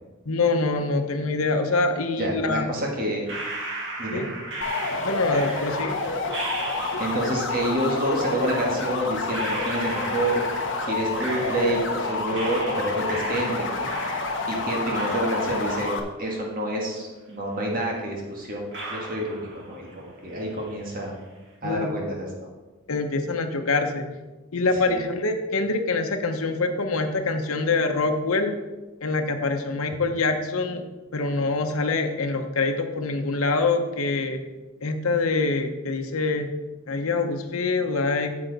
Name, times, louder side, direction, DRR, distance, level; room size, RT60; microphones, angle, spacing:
voice 1, 0.3-2.7 4.1-4.3 5.0-6.0 21.6-22.0 22.9-24.0 24.5-28.6 29.0-30.8 31.1-34.4 34.8-36.5 36.9-38.4, left 3 dB, 90° left, 5 dB, 0.9 m, -25 dB
voice 2, 2.2-3.2 4.0-4.2 7.0-15.9 16.2-21.1 21.6-22.5 24.7-25.0, right 1 dB, 40° right, -1 dB, 1.6 m, -28 dB
sound 1, 3.3-7.4 8.5-8.6 9.3-12.0 12.3-14.6 14.9-17.0 17.3-17.4 18.1-18.2 18.7-20.0 20.3-20.9, right 2 dB, 55° right, 1.9 m, -37 dB
sound 2, 4.6-16.0, left 3 dB, 60° left, 1.0 m, -29 dB
8.6 x 7.6 x 4.0 m, 1.2 s
head